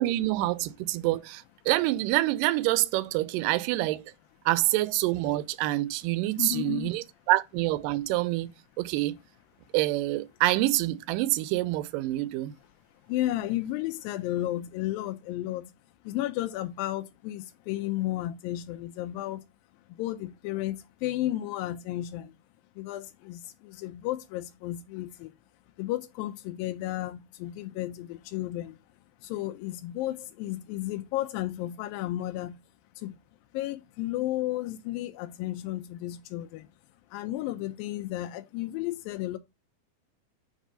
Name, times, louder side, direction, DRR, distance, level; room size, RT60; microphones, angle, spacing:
voice 1, 0.0-4.0 4.5-9.2 9.7-12.5, right 17 dB, 80° right, 2.1 m, -27 dB
voice 2, 6.4-6.9 13.0-15.7 16.0-19.4 19.9-22.3 22.8-25.3 25.8-28.8 29.2-32.6 33.0-33.2 33.5-36.7 37.1-39.4, left 15 dB, 80° left, 2.3 m, -33 dB
7.3 x 3.4 x 5.5 m
omnidirectional pair, 4.2 m